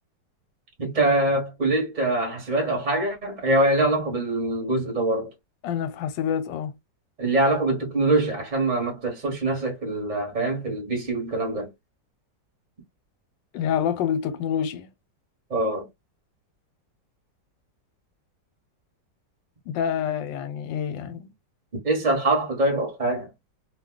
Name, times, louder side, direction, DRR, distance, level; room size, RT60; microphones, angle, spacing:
voice 1, 0.8-5.3 7.2-11.7 15.5-15.9 21.8-23.3, right 2 dB, 30° right, 0.9 m, -24 dB
voice 2, 5.6-6.7 13.5-14.9 19.7-21.3, left 8 dB, 85° left, 1.3 m, -27 dB
2.8 x 2.2 x 3.6 m
omnidirectional pair, 2.0 m